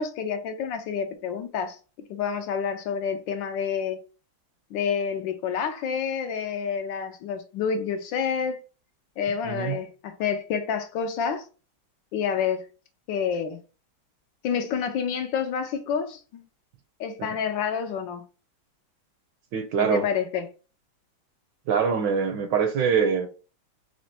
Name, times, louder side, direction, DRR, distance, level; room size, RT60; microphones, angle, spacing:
voice 1, 0.0-1.8 2.1-4.0 4.7-8.6 9.2-11.4 12.1-12.6 13.1-13.6 14.4-16.4 17.0-18.2 19.8-20.5, left 7 dB, 75° left, 1.2 m, -28 dB
voice 2, 9.4-9.8 19.5-20.0 21.7-23.3, right 6 dB, 75° right, 1.1 m, -24 dB
4.2 x 3.1 x 2.7 m
omnidirectional pair, 2.3 m